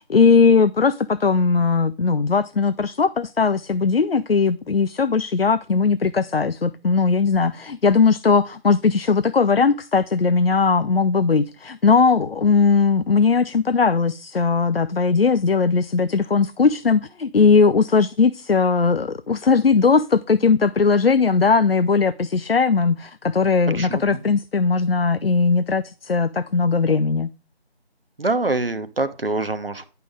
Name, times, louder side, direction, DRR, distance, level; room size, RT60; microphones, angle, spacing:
voice 1, 0.0-27.3, left 5 dB, 65° left, 0.5 m, -19 dB
voice 2, 23.7-24.2 28.2-29.8, right 2 dB, 60° right, 1.0 m, -25 dB
10.5 x 5.6 x 3.7 m
figure-of-eight pair, 175°, 33 cm